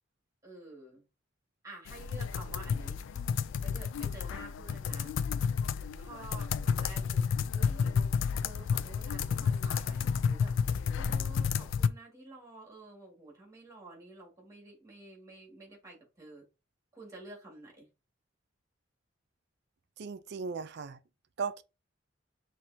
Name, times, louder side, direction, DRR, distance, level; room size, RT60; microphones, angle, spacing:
voice 1, 0.4-1.0 1.6-3.0 3.6-5.2 6.0-7.3 7.5-7.9 8.4-10.5 10.9-16.4 16.9-17.9, right 2 dB, 15° right, 2.1 m, -50 dB
sound 1, 1.9-11.9, left 6 dB, 70° left, 0.3 m, -31 dB
voice 2, 20.0-21.0 21.4-21.6, right 5 dB, 60° right, 0.4 m, -36 dB
5.9 x 3.1 x 2.7 m
head